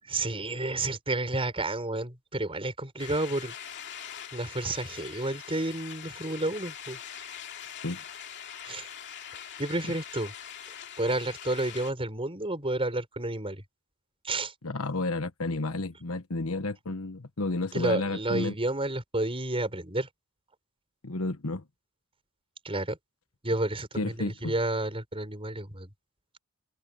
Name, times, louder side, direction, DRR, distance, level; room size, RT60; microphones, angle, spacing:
voice 1, 0.0-3.5 4.3-7.0 8.6-8.9 9.6-10.3 11.0-13.6 14.2-14.5 17.7-20.1 22.6-23.0 23.4-25.9, right 2 dB, 25° right, 5.9 m, -30 dB
sound 1, 3.0-11.9, left 9 dB, 55° left, 2.5 m, -43 dB
voice 2, 14.6-18.5 21.0-21.6 24.0-24.5, left 2 dB, 70° left, 1.3 m, -31 dB
head